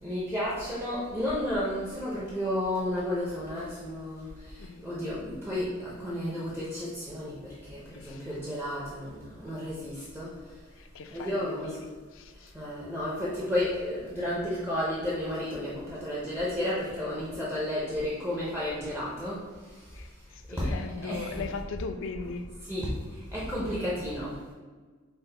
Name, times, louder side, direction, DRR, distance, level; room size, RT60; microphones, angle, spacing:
voice 1, 0.0-10.6 11.1-11.8 12.3-20.1 20.5-21.4 22.6-24.4, left 1 dB, 10° right, -7 dB, 0.5 m, -32 dB
voice 2, 10.8-11.8 12.2-12.5 19.9-20.1 20.3-22.5, left 4 dB, 65° left, 7 dB, 0.4 m, -38 dB
5.4 x 2.1 x 3.3 m, 1.4 s
head